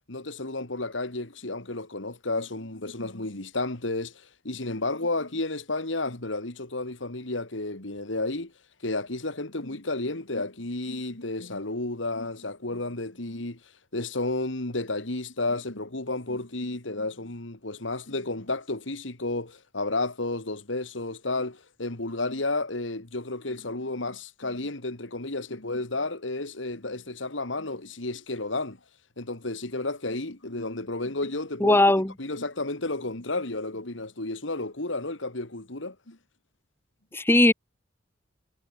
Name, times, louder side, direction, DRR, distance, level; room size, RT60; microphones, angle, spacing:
voice 1, 0.1-8.5 8.8-13.6 13.9-28.8 29.2-31.8 32.2-36.2, left 2 dB, 70° left, 2.6 m, -32 dB
voice 2, 31.6-32.1 37.1-37.5, left 1 dB, 10° left, 1.1 m, -19 dB
head